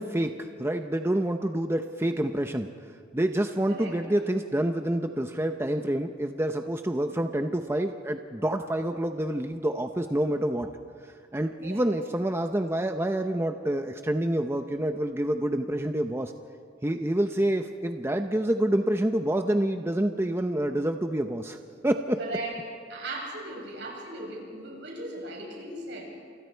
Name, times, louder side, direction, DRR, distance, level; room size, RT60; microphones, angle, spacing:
voice 1, 0.0-2.7 3.1-10.7 11.3-16.3 16.8-21.6 21.8-22.2, right 1 dB, 15° right, 6 dB, 0.8 m, -27 dB
voice 2, 22.2-22.6 22.9-26.1, right 2 dB, 75° right, -2 dB, 8.0 m, -37 dB
28.5 x 28.0 x 4.6 m, 2.1 s
head